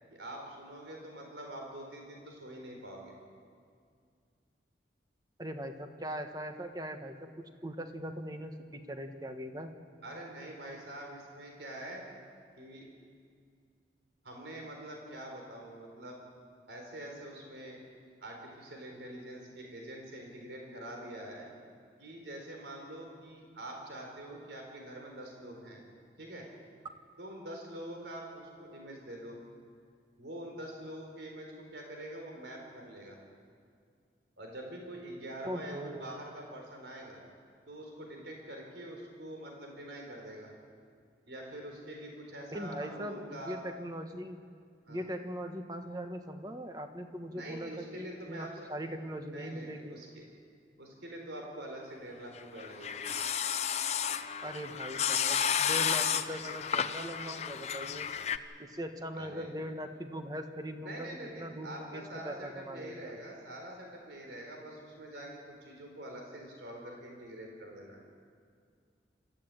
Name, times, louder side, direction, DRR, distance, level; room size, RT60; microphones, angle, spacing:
voice 1, 0.1-3.1 10.0-12.0 12.6-12.8 14.2-16.2 16.7-17.8 18.2-21.5 22.0-25.8 26.2-26.5 27.2-29.4 30.2-33.2 34.4-37.2 37.7-40.5 41.3-43.6 44.9-45.1 47.3-48.6 49.3-50.2 50.8-53.1 59.1-59.5 60.8-68.0, right 1 dB, 80° right, 1 dB, 4.2 m, -45 dB
voice 2, 5.4-7.3 7.6-9.7 35.4-36.2 42.5-44.4 44.9-50.0 54.4-58.1 58.6-61.1 61.4-63.1, equal, 20° right, 6 dB, 1.4 m, -40 dB
sound 1, 52.4-58.4, left 8 dB, 35° left, 0.7 m, -32 dB
25.5 x 14.5 x 9.1 m, 2.2 s
head